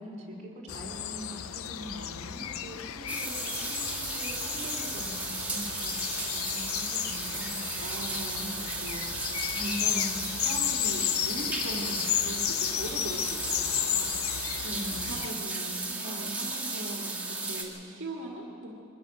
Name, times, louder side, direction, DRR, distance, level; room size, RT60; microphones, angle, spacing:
voice 1, 0.0-7.6 9.5-10.2 14.7-15.2, equal, 35° right, -2 dB, 3.5 m, -42 dB
sound 1, 0.7-15.3, left 11 dB, 85° left, 0.6 m, -33 dB
sound 2, 3.1-17.6, right 3 dB, 5° right, 2.6 m, -35 dB
voice 2, 7.8-9.0 9.5-10.1 10.4-14.4 14.6-18.7, right 1 dB, 65° right, -1 dB, 2.0 m, -40 dB
23.0 x 15.0 x 7.6 m, 2.7 s
head